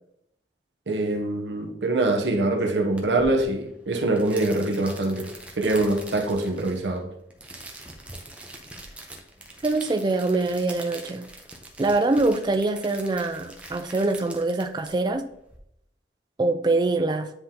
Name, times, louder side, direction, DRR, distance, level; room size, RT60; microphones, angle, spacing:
voice 1, 0.9-7.1, right 2 dB, 80° right, 0.8 m, -24 dB
sound 1, 3.0-15.6, right 1 dB, 5° right, 0.7 m, -43 dB
voice 2, 9.6-11.2 11.8-15.3 16.4-17.3, right 2 dB, 25° right, 0.3 m, -24 dB
9.8 x 3.7 x 2.9 m
head